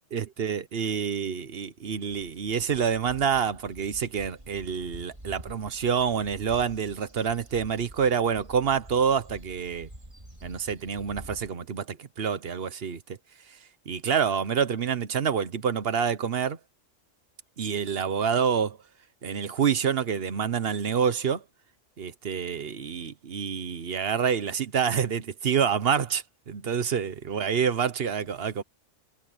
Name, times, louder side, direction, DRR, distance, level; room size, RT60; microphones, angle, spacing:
voice 1, 0.1-9.9 10.4-13.0 13.9-16.6 17.6-18.8 19.2-21.4 22.0-28.6, right 7 dB, 50° right, 1.1 m, -27 dB
sound 1, 1.9-11.5, right 1 dB, 25° right, 2.9 m, -48 dB
omnidirectional pair, 1.3 m